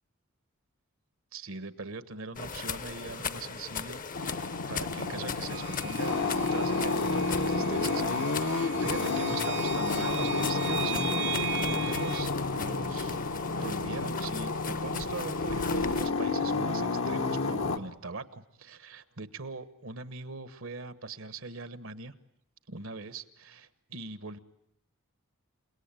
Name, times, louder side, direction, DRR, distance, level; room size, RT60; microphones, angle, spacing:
voice 1, 1.3-13.2 13.6-22.1 22.7-24.4, right 3 dB, 65° right, 13 dB, 1.3 m, -41 dB
sound 1, 2.4-16.1, left 6 dB, 40° left, 0.9 m, -39 dB
sound 2, 4.1-17.8, left 3 dB, 70° left, 1.3 m, -30 dB
sound 3, 5.5-12.2, right 9 dB, 50° right, 1.1 m, -39 dB
29.5 x 18.0 x 9.0 m, 0.77 s
head